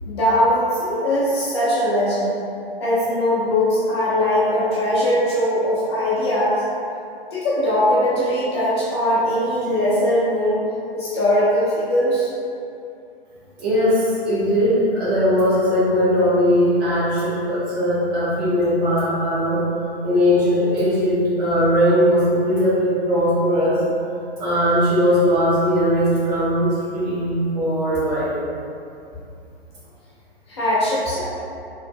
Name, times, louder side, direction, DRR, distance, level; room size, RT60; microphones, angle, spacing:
voice 1, 0.0-2.4 2.8-6.6 7.3-10.6 10.9-12.3 30.5-31.2, equal, 25° left, -9 dB, 0.6 m, -20 dB
voice 2, 13.6-19.6 20.0-23.8 24.4-28.3, equal, 40° right, -10 dB, 1.4 m, -19 dB
3.0 x 2.5 x 3.6 m, 2.6 s
figure-of-eight pair, 125°, 31 cm